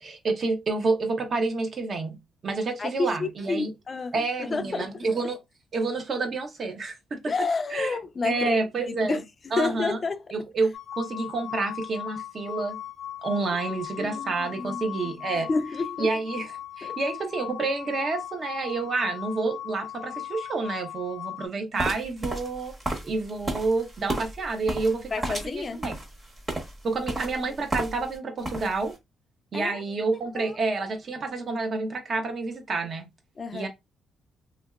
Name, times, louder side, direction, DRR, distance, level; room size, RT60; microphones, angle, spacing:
voice 1, 0.0-2.1 2.4-3.7 4.1-5.4 5.7-7.3 7.7-8.0 8.2-9.2 9.5-10.0 10.3-12.8 13.2-15.5 16.0-16.5 16.8-22.7 23.0-25.1 25.4-25.9 26.8-28.9 29.5-33.1 33.5-33.7, right 3 dB, 45° right, 0.8 m, -29 dB
voice 2, 2.8-4.1 4.4-5.1 7.3-8.6 8.9-10.2 14.0-14.9 15.3-16.1 16.8-17.0 25.1-25.8 29.5-29.8 30.3-30.6 33.4-33.7, left 4 dB, 35° left, 0.3 m, -30 dB
sound 1, 10.7-21.5, left 11 dB, 75° left, 0.6 m, -38 dB
sound 2, 21.8-28.2 28.4-28.9, right 1 dB, 25° right, 1.2 m, -33 dB
2.9 x 2.7 x 2.3 m
cardioid pair, 90°, 0 cm